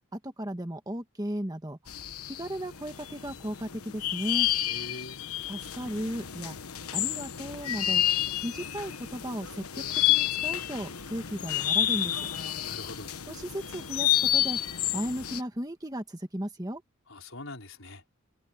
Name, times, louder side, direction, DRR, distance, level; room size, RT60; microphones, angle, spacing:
voice 1, 0.1-2.0 2.2-4.5 5.5-6.6 6.9-8.0 8.4-12.3 13.3-14.6 14.9-16.8, equal, 15° right, 1.6 m, -35 dB
sound 1, 1.9-15.4, left 12 dB, 85° left, 1.2 m, -30 dB
voice 2, 4.7-5.2 12.6-13.2 17.1-18.0, left 2 dB, 65° left, 4.9 m, -43 dB
head